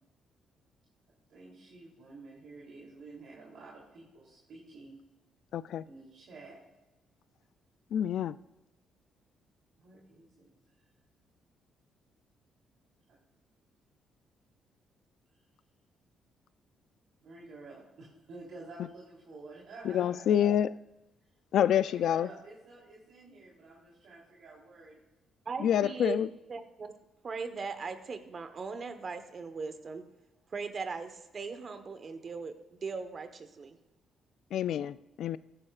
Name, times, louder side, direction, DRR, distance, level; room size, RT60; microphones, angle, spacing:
voice 1, 1.3-5.0 5.8-6.6 9.8-10.5 17.2-20.4 21.6-25.0, right 3 dB, 70° right, -5 dB, 3.2 m, -50 dB
voice 2, 5.5-5.8 7.9-8.4 18.8-18.9 19.8-20.7 21.5-22.3 25.6-26.3 34.5-35.4, left 10 dB, 70° left, 17 dB, 0.3 m, -27 dB
voice 3, 25.5-26.9 27.2-30.0 30.5-32.5 32.8-33.8, right 4 dB, 45° right, 9 dB, 1.2 m, -39 dB
15.5 x 9.9 x 2.5 m, 1.0 s
cardioid pair, 90°, 0 cm